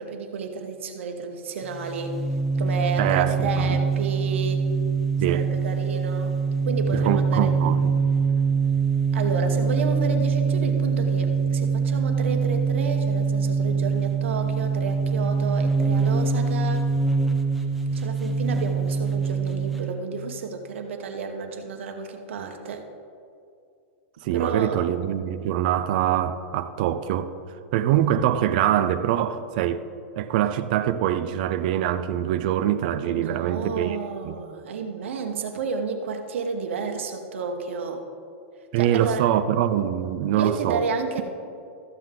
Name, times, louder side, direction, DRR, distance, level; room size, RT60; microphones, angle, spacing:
voice 1, 0.0-2.2 2.6-4.6 5.3-6.4 6.6-7.5 9.1-16.9 17.9-22.8 24.3-24.8 33.1-38.0 38.8-39.2 40.4-41.2, right 5 dB, 80° right, 5 dB, 1.2 m, -31 dB
sound 1, 1.6-19.9, right 5 dB, ahead, 0.7 m, -24 dB
voice 2, 3.0-3.8 5.2-5.5 6.9-7.9 24.2-27.3 27.7-29.8 30.2-34.0 34.2-34.4 38.7-40.8, right 11 dB, 45° right, 10 dB, 0.5 m, -24 dB
13.5 x 7.8 x 3.8 m, 2.4 s
supercardioid pair, 170°, 7 cm